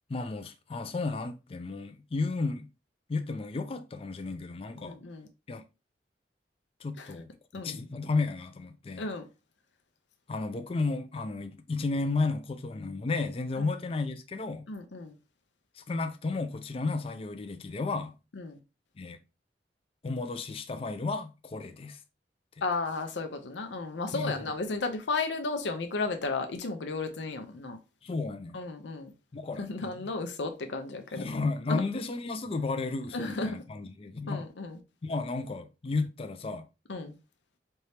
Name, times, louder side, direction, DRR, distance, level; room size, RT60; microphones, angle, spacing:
voice 1, 0.1-2.7 3.1-5.0 5.5-5.6 6.8-9.1 10.3-14.6 15.8-18.1 19.0-19.2 20.0-22.0 24.1-24.3 28.0-28.6 29.3-29.9 31.2-34.5 35.0-36.7, left 3 dB, 30° left, 0.4 m, -33 dB
voice 2, 4.8-5.3 7.0-7.1 7.5-7.8 9.0-9.3 13.6-13.7 14.7-15.1 18.3-18.6 22.6-27.8 28.5-29.1 29.6-31.3 31.7-31.8 33.1-33.6 34.3-34.8 36.9-37.2, left 3 dB, 80° left, 0.6 m, -34 dB
4.4 x 2.8 x 3.3 m
head